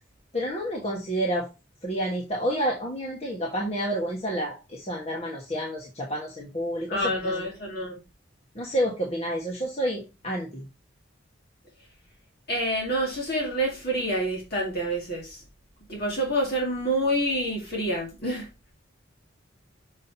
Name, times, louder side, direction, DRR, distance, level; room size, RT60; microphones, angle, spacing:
voice 1, 0.3-1.5 1.8-7.3 8.5-10.7, equal, 30° left, 1.3 m, -29 dB
voice 2, 6.9-8.0 12.5-15.4 15.9-18.5, right 1 dB, 50° left, 2.2 m, -27 dB
6.2 x 5.7 x 2.7 m
head